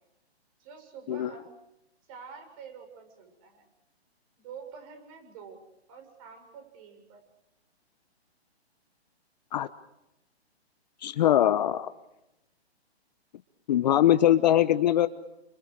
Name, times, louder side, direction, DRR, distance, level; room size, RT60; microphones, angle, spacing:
voice 1, 0.6-1.5 2.1-3.7 4.4-5.6 5.9-7.2, right 6 dB, 30° right, 6 dB, 7.2 m, -47 dB
voice 2, 11.0-11.9 13.7-15.1, left 11 dB, 40° left, 12 dB, 1.0 m, -22 dB
30.0 x 27.0 x 4.9 m, 0.89 s
hypercardioid pair, 150°, 33 cm